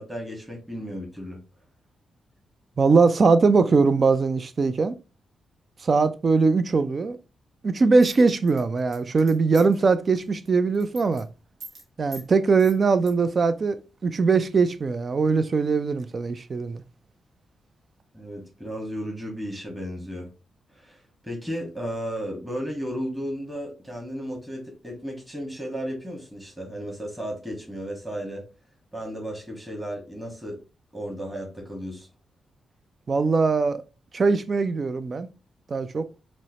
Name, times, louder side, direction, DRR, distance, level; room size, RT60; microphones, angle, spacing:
voice 1, 0.0-1.4 18.1-20.3 20.7-28.4 28.9-30.6 30.9-32.1, equal, 10° right, 1.4 m, -34 dB
voice 2, 2.8-5.0 5.8-7.2 7.6-11.3 12.0-13.8 14.0-16.8 33.1-33.8 34.1-35.3 35.7-36.1, right 4 dB, 45° right, 0.3 m, -21 dB
sound 1, 8.0-9.9 10.2-10.5 10.7-11.2 11.6-11.8 12.1-12.3 12.6-13.1, right 3 dB, 80° right, 1.2 m, -43 dB
4.3 x 2.1 x 2.8 m
cardioid pair, 70°, 0 cm